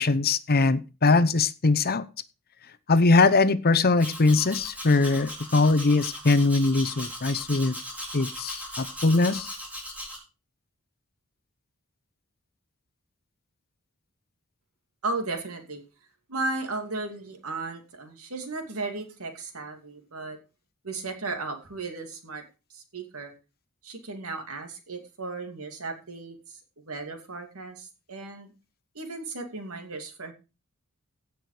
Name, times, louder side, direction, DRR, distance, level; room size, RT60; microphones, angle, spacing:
voice 1, 0.0-2.0 2.9-7.7 8.1-9.5, left 3 dB, 45° left, 14 dB, 0.8 m, -21 dB
Domestic sounds home sounds, 4.0-10.2, equal, 5° right, 4.4 m, -38 dB
voice 2, 15.0-15.8 16.3-20.4 20.8-22.4 22.7-23.3 23.8-28.5 28.9-30.3, right 3 dB, 75° right, 5 dB, 2.6 m, -35 dB
16.5 x 6.2 x 4.9 m, 0.31 s
head